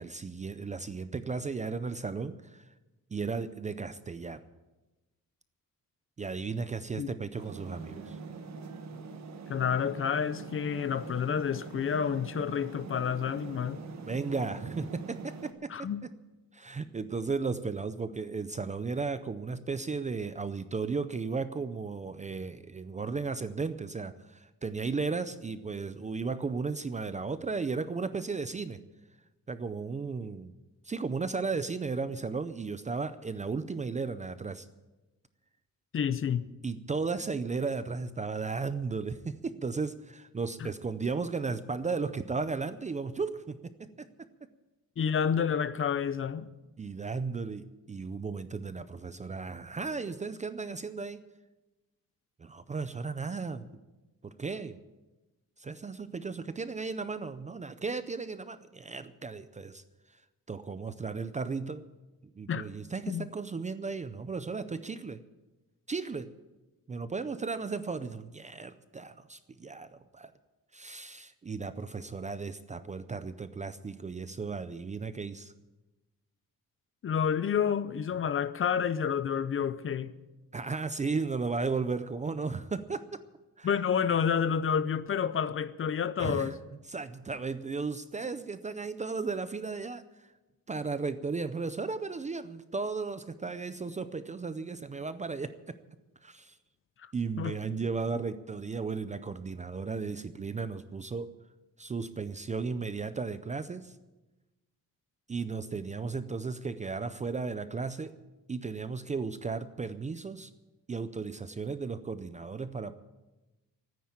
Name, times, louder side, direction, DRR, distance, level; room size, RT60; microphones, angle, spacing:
voice 1, 0.0-2.6 3.1-4.4 6.2-8.2 14.1-15.7 16.5-28.8 29.5-30.5 30.8-34.7 36.6-44.1 46.8-51.2 52.4-53.6 54.2-54.8 55.6-59.8 60.5-61.9 62.4-65.2 65.9-66.3 66.9-70.3 70.7-75.5 80.5-83.0 83.6-83.7 86.2-86.5 86.9-90.3 90.7-95.8 96.2-96.6 97.1-101.3 101.8-103.9 105.3-108.1 108.5-110.5 110.9-112.9, right 4 dB, 20° right, 0.4 m, -35 dB
sound 1, 7.4-15.5, right 4 dB, 50° right, 1.4 m, -43 dB
voice 2, 9.5-13.8 15.7-16.0 35.9-36.5 40.6-40.7 45.0-46.5 62.5-62.7 63.1-63.3 77.0-80.1 83.6-86.6 97.0-97.1 97.4-97.6, left 7 dB, 35° left, 0.6 m, -29 dB
14.0 x 9.4 x 8.8 m
wide cardioid pair, 175°, 35 cm